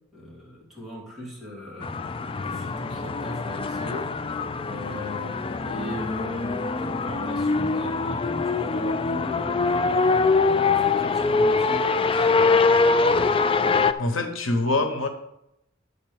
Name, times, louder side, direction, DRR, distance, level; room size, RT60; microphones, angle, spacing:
voice 1, 0.1-2.0 2.4-4.2 4.6-10.1 10.6-12.7, left 1 dB, ahead, -5 dB, 2.7 m, -39 dB
sound 1, 1.8-13.9, left 4 dB, 25° left, 0.4 m, -23 dB
voice 2, 14.0-15.1, left 2 dB, 85° left, 6 dB, 1.1 m, -24 dB
9.5 x 4.2 x 7.0 m, 0.80 s
head